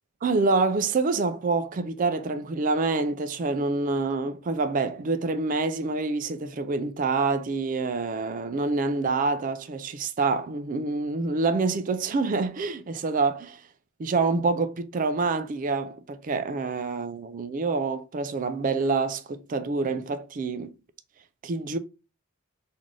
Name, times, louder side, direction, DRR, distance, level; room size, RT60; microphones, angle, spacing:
voice 1, 0.2-13.6 14.0-20.7 21.4-21.8, right 3 dB, 40° right, 0.3 m, -27 dB
3.6 x 2.6 x 3.2 m
head